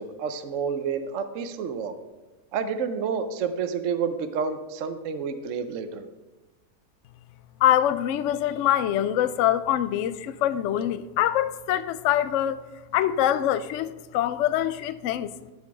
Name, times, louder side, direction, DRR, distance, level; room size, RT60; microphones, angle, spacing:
voice 1, 0.0-1.9 2.5-6.1, right 6 dB, 60° right, 0.8 m, -29 dB
voice 2, 7.6-12.6 12.9-15.3, left 11 dB, 85° left, 0.6 m, -24 dB
12.0 x 6.5 x 4.7 m
omnidirectional pair, 1.8 m